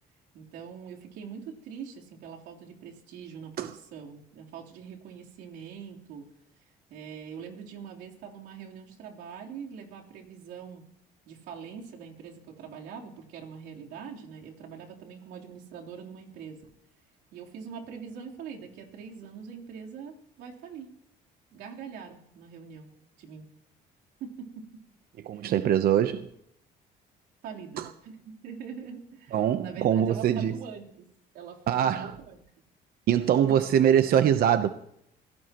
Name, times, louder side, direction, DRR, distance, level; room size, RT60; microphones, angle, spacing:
voice 1, 0.3-6.3 6.9-10.8 11.2-16.7 17.3-20.9 21.5-22.9 23.2-23.5 24.2-24.6 25.3-25.5 27.4-31.1 31.3-32.4 33.5-33.6, right 7 dB, 85° right, 3.7 m, -43 dB
voice 2, 25.2-26.3 27.8-27.9 29.3-30.5 31.7-32.1 33.1-34.7, right 10 dB, 60° right, 0.9 m, -23 dB
26.5 x 17.5 x 3.1 m
cardioid pair, 110°, 17 cm